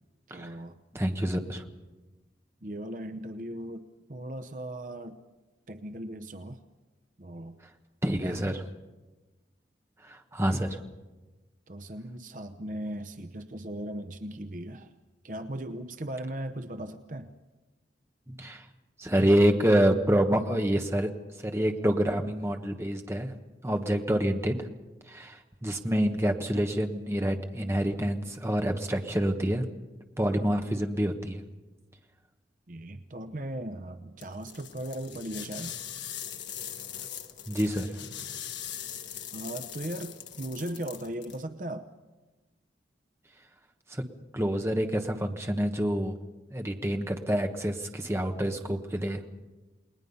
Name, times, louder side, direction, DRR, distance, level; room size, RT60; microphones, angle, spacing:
voice 1, 0.3-0.8 2.6-5.2 5.7-6.6 7.2-7.6 8.2-8.6 11.7-14.9 15.2-17.3 32.7-35.7 39.3-41.9, right 1 dB, 45° right, 9 dB, 0.8 m, -38 dB
voice 2, 0.9-1.6 8.0-8.6 10.0-10.8 18.3-18.6 19.0-21.1 21.4-23.3 23.6-24.7 25.1-29.6 30.2-31.4 37.5-38.0 43.9-44.0 44.3-46.1 46.5-49.3, equal, 15° right, 4 dB, 1.2 m, -27 dB
sound 1, 34.2-41.4, left 9 dB, 90° left, 1.3 m, -41 dB
29.5 x 19.5 x 5.5 m, 1.2 s
head